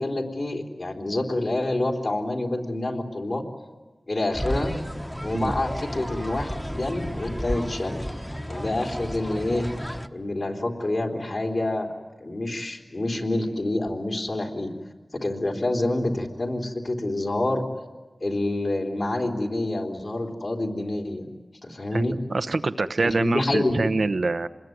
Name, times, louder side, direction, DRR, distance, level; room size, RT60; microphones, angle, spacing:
voice 1, 0.0-3.4 4.1-4.8 5.2-8.0 8.5-9.7 10.1-11.9 12.2-14.7 15.1-17.7 18.2-21.3 21.6-22.1 23.0-23.9, left 2 dB, 60° left, 2 dB, 3.7 m, -27 dB
sound 1, 4.3-10.1, equal, 5° left, 1.2 m, -32 dB
voice 2, 21.9-24.5, right 3 dB, 75° right, 10 dB, 0.9 m, -25 dB
26.5 x 21.0 x 9.4 m, 1.3 s
cardioid pair, 45°, 0 cm